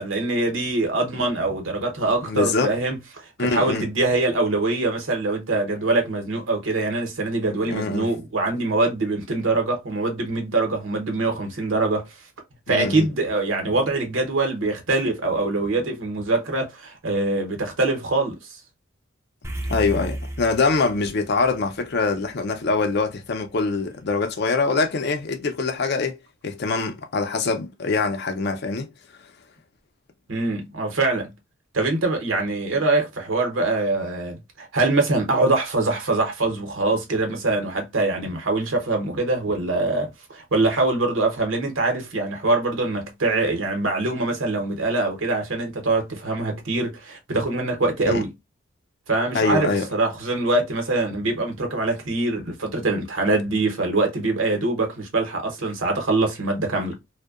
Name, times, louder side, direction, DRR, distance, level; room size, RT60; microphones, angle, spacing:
voice 1, 0.0-12.1 12.7-18.4 30.3-31.3 31.7-48.3 49.1-57.0, right 2 dB, 80° right, 0.8 m, -23 dB
voice 2, 2.2-2.7 3.4-3.9 7.7-8.1 12.7-13.1 19.7-26.2 26.4-28.9 48.1-48.2 49.3-49.9, left 4 dB, 55° left, 0.5 m, -24 dB
sound 1, 19.4-24.0, right 1 dB, 15° right, 0.4 m, -35 dB
2.6 x 2.1 x 2.3 m
head